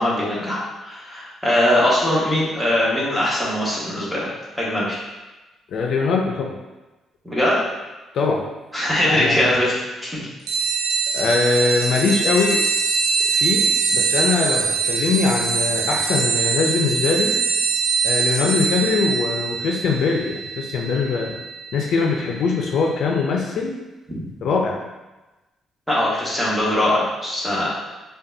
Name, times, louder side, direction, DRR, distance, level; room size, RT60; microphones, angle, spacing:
voice 1, 0.0-4.3 4.6-5.0 7.2-7.6 8.7-10.3 25.9-27.7, left 1 dB, ahead, -7 dB, 1.4 m, -21 dB
voice 2, 5.7-6.6 8.1-8.4 9.1-9.5 11.1-12.6 13.3-17.3 18.0-21.4 21.7-23.7 24.4-24.8, left 4 dB, 70° left, 0 dB, 0.5 m, -22 dB
sound 1, 10.5-22.6, right 5 dB, 80° right, 0.7 m, -23 dB
5.1 x 2.4 x 2.6 m, 1.1 s
cardioid pair, 90°, 0 cm